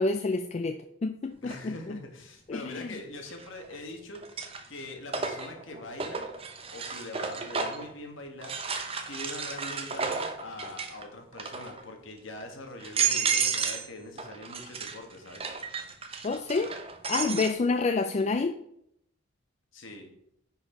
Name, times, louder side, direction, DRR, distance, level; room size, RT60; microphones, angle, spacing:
voice 1, 0.0-2.0 2.5-3.0 16.2-16.7 17.1-18.6, left 3 dB, 30° left, 0.3 m, -28 dB
voice 2, 1.4-6.2 6.7-8.5 9.1-15.5 19.7-20.1, left 2 dB, 65° left, 1.6 m, -43 dB
sound 1, 1.5-1.6 3.3-3.8 4.1-7.9 8.4-11.0 11.3-11.8 12.4-12.5 12.8-13.9 14.2-17.5, right 6 dB, 25° right, 0.7 m, -32 dB
9.7 x 4.6 x 4.4 m
head